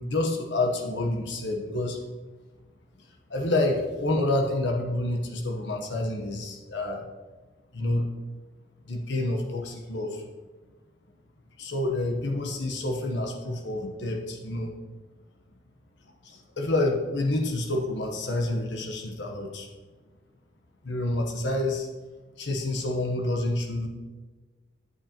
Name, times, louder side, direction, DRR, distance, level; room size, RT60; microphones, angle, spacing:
voice 1, 0.0-2.0 3.3-7.1 7.7-8.1 8.8-10.3 11.6-14.7 16.2-19.7 20.8-21.9 22.4-23.9, left 2 dB, 65° left, 2 dB, 0.9 m, -28 dB
9.6 x 8.6 x 2.9 m, 1.3 s
head